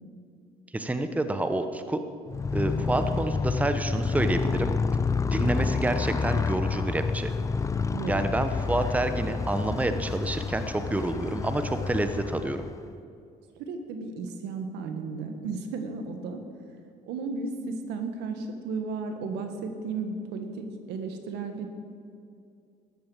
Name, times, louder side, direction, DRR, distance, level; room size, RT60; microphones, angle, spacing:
voice 1, 0.7-2.0 2.5-4.7 5.2-7.3 8.1-12.6, right 2 dB, 10° right, 9 dB, 0.9 m, -28 dB
Motorcycle, 2.3-12.9, left 4 dB, 20° left, 0.4 m, -29 dB
voice 2, 7.9-8.2 13.6-16.4 17.1-21.7, right 4 dB, 90° right, 6 dB, 1.7 m, -34 dB
13.5 x 10.5 x 7.3 m, 2.4 s
cardioid pair, 110°, 17 cm